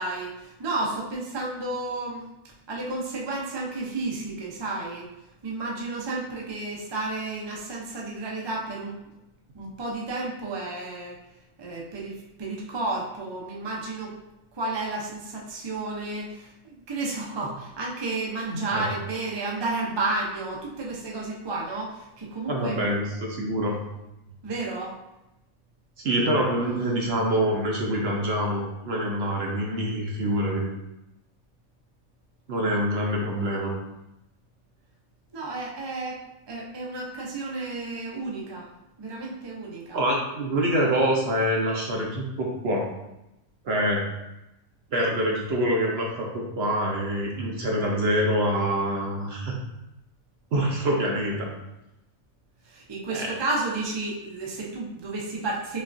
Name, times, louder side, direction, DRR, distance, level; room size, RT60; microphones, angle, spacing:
voice 1, 0.0-2.3 2.7-5.1 5.4-8.9 9.5-11.2 11.6-14.2 14.5-22.9 24.4-25.0 35.3-38.7 39.0-40.0 52.6-55.8, right 2 dB, 35° right, -3 dB, 0.4 m, -32 dB
voice 2, 18.5-18.9 22.5-23.8 26.0-30.7 32.5-33.7 39.9-42.9 43.6-44.0 44.9-49.6 50.5-51.5 53.1-53.3, equal, 60° right, -1 dB, 0.7 m, -25 dB
5.3 x 2.4 x 2.6 m, 0.92 s
omnidirectional pair, 1.5 m